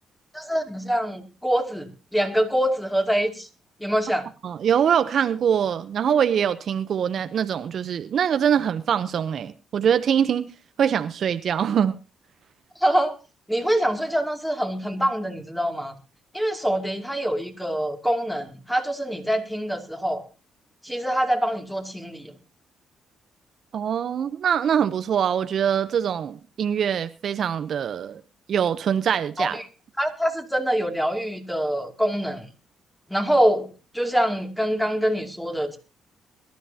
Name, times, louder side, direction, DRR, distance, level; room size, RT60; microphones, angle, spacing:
voice 1, 0.3-3.5 3.8-4.3 12.8-13.1 13.5-15.9 16.3-20.3 20.8-22.3 29.4-29.7 30.0-32.5 33.1-35.8, equal, 5° left, 2.6 m, -25 dB
voice 2, 4.4-10.5 10.8-12.0 23.7-28.2 28.5-29.6, right 8 dB, 60° right, 0.7 m, -23 dB
22.0 x 12.5 x 2.8 m
cardioid pair, 90°, 0 cm